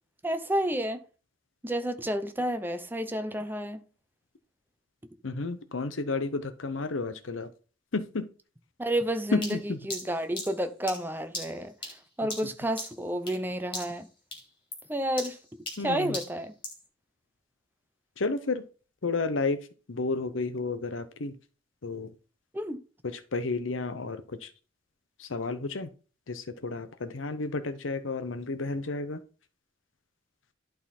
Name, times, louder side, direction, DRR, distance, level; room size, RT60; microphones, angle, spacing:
voice 1, 0.2-1.0 1.6-3.8 8.8-11.7 12.2-14.1 14.9-15.4 15.8-16.6 22.5-22.8, right 1 dB, 10° right, 0.7 m, -30 dB
voice 2, 5.2-7.5 7.9-8.3 9.3-9.8 15.8-16.2 18.2-18.7 19.0-19.6 19.9-21.3 21.8-22.1 23.0-24.5 25.2-25.9 26.3-29.2, left 3 dB, 90° left, 0.8 m, -31 dB
sound 1, 9.4-13.5 13.7-14.1 14.3-16.9, left 2 dB, 25° left, 2.7 m, -39 dB
11.5 x 3.8 x 4.3 m
head